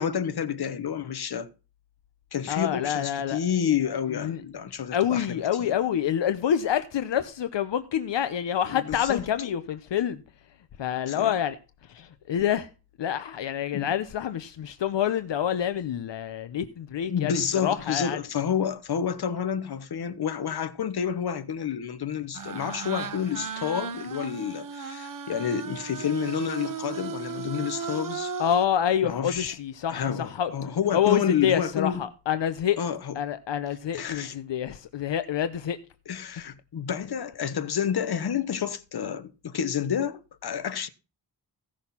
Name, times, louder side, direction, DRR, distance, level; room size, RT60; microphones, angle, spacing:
voice 1, 0.0-1.5 2.3-5.7 8.7-9.2 11.1-11.3 13.7-13.9 17.1-28.3 29.0-29.6 29.9-32.0 32.8-33.2 33.9-34.4 36.1-40.9, left 8 dB, 60° left, 1.2 m, -29 dB
voice 2, 2.5-3.4 4.1-4.4 4.9-10.2 10.8-11.6 11.9-12.7 13.0-18.2 28.4-32.8 33.2-35.8, left 9 dB, 80° left, 0.9 m, -27 dB
sound 1, 22.3-28.7, right 6 dB, 50° right, 1.0 m, -36 dB
16.0 x 6.4 x 5.7 m
wide cardioid pair, 145°, 43 cm